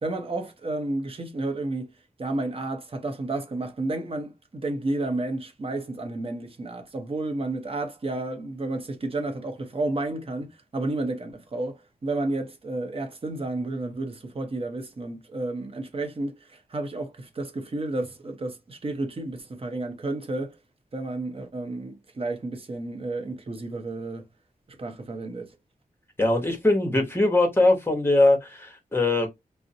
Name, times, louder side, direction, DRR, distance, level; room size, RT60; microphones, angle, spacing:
voice 1, 0.0-1.9 2.2-20.6 20.9-24.2 24.8-25.5, right 2 dB, 40° right, 0.7 m, -31 dB
voice 2, 26.2-29.3, left 2 dB, 15° left, 1.0 m, -21 dB
2.4 x 2.1 x 2.6 m
cardioid pair, 65°, 15 cm